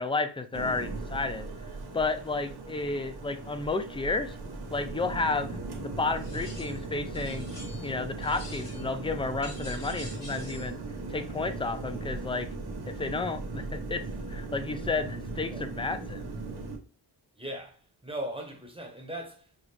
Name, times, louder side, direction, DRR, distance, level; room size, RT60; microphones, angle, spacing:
voice 1, 0.0-1.5 1.9-4.4 4.7-5.5 5.8-7.5 7.8-10.8 11.1-12.5 12.9-16.3, left 3 dB, 15° left, 0.3 m, -32 dB
sound 1, 0.5-16.8, right 3 dB, 60° right, 1.1 m, -38 dB
sound 2, 6.2-6.8 7.1-7.9 8.2-8.9 9.4-10.7, left 1 dB, 70° left, 2.4 m, -47 dB
voice 2, 17.4-19.7, right 1 dB, 10° right, 0.9 m, -39 dB
5.6 x 2.4 x 3.3 m
wide cardioid pair, 135°, 44 cm